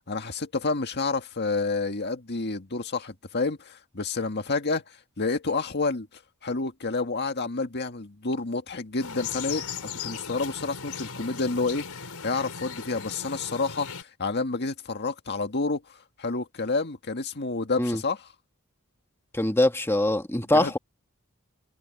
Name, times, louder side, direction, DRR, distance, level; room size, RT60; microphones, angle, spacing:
voice 1, 0.1-6.1 6.4-15.8 16.2-18.2 20.5-20.7, left 3 dB, 50° left, 1.8 m, -29 dB
sound 1, 9.0-14.0, left 6 dB, 85° left, 4.4 m, -37 dB
voice 2, 19.3-20.8, left 1 dB, 10° left, 1.7 m, -23 dB
head